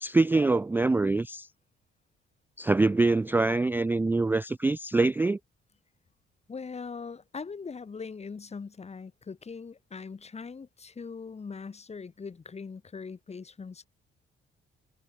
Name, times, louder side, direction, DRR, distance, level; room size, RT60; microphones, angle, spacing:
voice 1, 0.0-1.5 2.6-5.4, right 3 dB, 10° right, 0.3 m, -24 dB
voice 2, 6.5-13.9, left 5 dB, 30° left, 2.5 m, -41 dB
cardioid pair, 90°, 20 cm